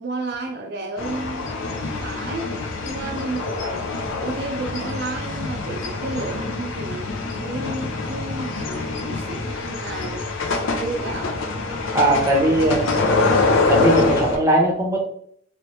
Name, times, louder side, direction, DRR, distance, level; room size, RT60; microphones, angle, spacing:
voice 1, 0.0-1.5 2.0-2.5 2.8-3.8 4.2-10.3 10.7-11.3, right 2 dB, 60° right, 2 dB, 0.5 m, -32 dB
sound 1, 1.0-14.4, left 3 dB, 80° left, 0.6 m, -25 dB
voice 2, 11.9-12.9 13.7-15.0, right 1 dB, 15° right, 0 dB, 0.7 m, -19 dB
3.1 x 3.1 x 3.1 m, 0.66 s
head